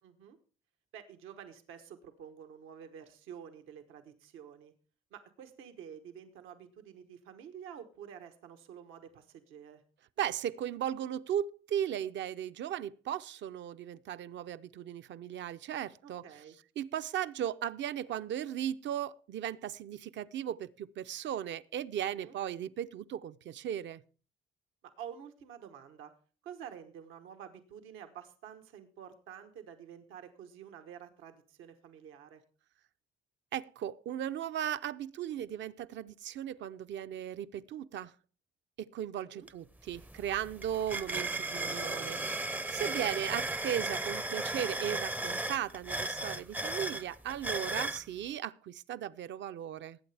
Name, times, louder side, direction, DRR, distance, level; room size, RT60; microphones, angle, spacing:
voice 1, 0.0-0.4 0.9-4.7 5.1-9.8 16.0-16.6 22.1-22.3 25.0-26.1 26.4-32.4 39.2-39.5 42.9-43.3, right 8 dB, 90° right, 1.2 m, -49 dB
voice 2, 10.2-16.2 16.8-24.0 33.5-38.1 38.8-42.4 42.7-50.0, right 10 dB, 65° right, 0.6 m, -37 dB
sound 1, 39.5-39.6 39.9-48.0, right 2 dB, 10° right, 0.4 m, -36 dB
20.0 x 8.5 x 3.4 m
cardioid pair, 90°, 20 cm